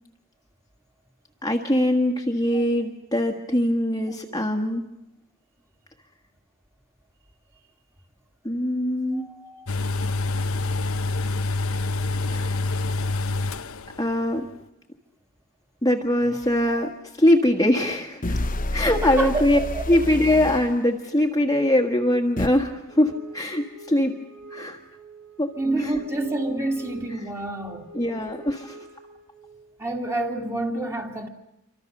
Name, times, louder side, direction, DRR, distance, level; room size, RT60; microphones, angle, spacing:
voice 1, 1.4-4.9 8.4-9.3 12.3-12.6 14.0-14.5 15.8-18.4 18.7-19.6 19.9-24.2 24.5-24.8 25.4-25.5 25.8-25.9 27.2-27.3 27.9-28.9, left 1 dB, 15° left, 1.6 m, -22 dB
voice 2, 9.1-9.7 18.8-19.8 25.6-27.9 29.8-31.3, right 2 dB, 15° right, 2.4 m, -28 dB
sound 1, 9.7-14.1 14.4-14.5, left 2 dB, 75° left, 1.0 m, -26 dB
sound 2, 16.4-16.5 18.2-20.7 22.4-22.5, left 1 dB, 40° left, 1.1 m, -28 dB
Wind instrument woodwind instrument, 22.9-29.7, right 2 dB, 65° right, 5.5 m, -45 dB
27.5 x 25.0 x 6.7 m
head